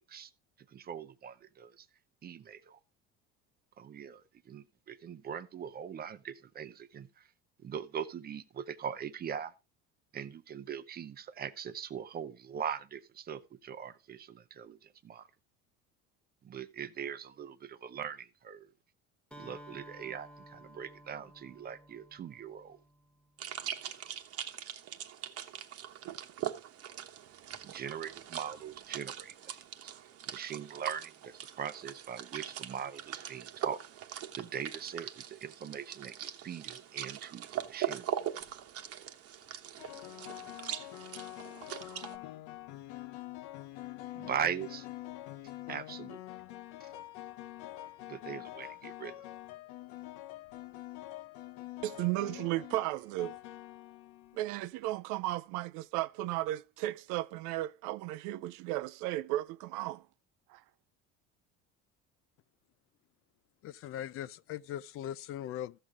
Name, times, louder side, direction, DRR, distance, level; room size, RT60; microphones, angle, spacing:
voice 1, 0.7-1.9 2.2-2.8 3.8-7.3 7.6-9.5 10.1-15.3 16.4-18.7 19.4-22.8 27.6-29.6 29.8-29.9 30.3-33.8 34.4-38.1 44.1-44.9 45.7-46.2 46.8-46.9 48.1-49.3, right 8 dB, 30° right, 0.7 m, -41 dB
Acoustic guitar, 19.3-23.2, right 1 dB, 5° left, 0.8 m, -54 dB
sound 1, 23.4-42.2, right 10 dB, 50° right, 1.1 m, -41 dB
sound 2, 38.2-38.5 39.8-54.6, left 15 dB, 70° left, 0.8 m, -46 dB
voice 2, 51.8-53.4 54.3-60.1 60.5-60.6, right 16 dB, 70° right, 0.5 m, -35 dB
voice 3, 63.6-65.8, left 11 dB, 45° left, 0.4 m, -40 dB
14.0 x 6.7 x 3.5 m
cardioid pair, 125°, 31 cm